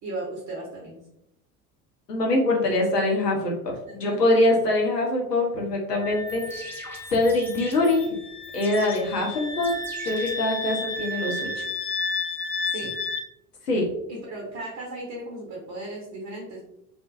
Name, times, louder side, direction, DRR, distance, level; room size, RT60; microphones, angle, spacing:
voice 1, 0.0-1.0 3.9-4.2 12.7-12.9 14.1-16.6, right 2 dB, 35° right, -2 dB, 0.7 m, -36 dB
voice 2, 2.1-6.8 7.1-8.1 8.5-9.7 10.0-11.6 13.7-13.8, left 2 dB, 85° left, -1 dB, 0.8 m, -23 dB
Wind instrument woodwind instrument, 6.0-13.3, left 3 dB, 35° left, 0.4 m, -33 dB
sound 1, 6.1-11.1, equal, 5° left, 0.8 m, -44 dB
2.4 x 2.1 x 2.6 m, 0.83 s
figure-of-eight pair, 70°, 47 cm